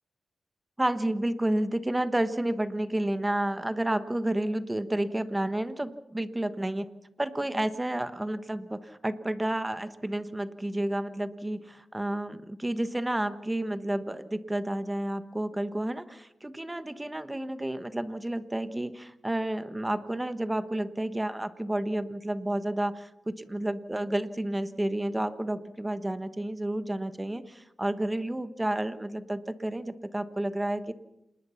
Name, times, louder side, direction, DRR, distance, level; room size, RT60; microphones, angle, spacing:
voice 1, 0.8-6.9 7.2-30.9, right 1 dB, 15° right, 11 dB, 1.3 m, -31 dB
27.5 x 20.5 x 5.8 m, 0.88 s
wide cardioid pair, 110°, 0 cm